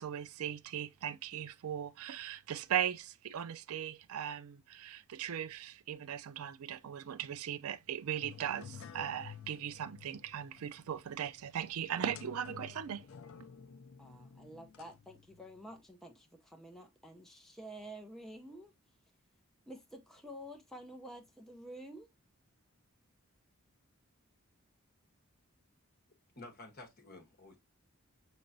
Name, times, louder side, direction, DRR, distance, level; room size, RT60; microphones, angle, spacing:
voice 1, 0.0-13.0, right 9 dB, 80° right, 0.4 m, -38 dB
sound 1, 8.2-15.8, left 6 dB, 65° left, 0.4 m, -52 dB
voice 2, 14.0-18.7 19.7-22.1, right 1 dB, ahead, 0.6 m, -50 dB
voice 3, 26.4-27.6, left 2 dB, 45° left, 1.2 m, -51 dB
5.8 x 3.2 x 2.6 m
head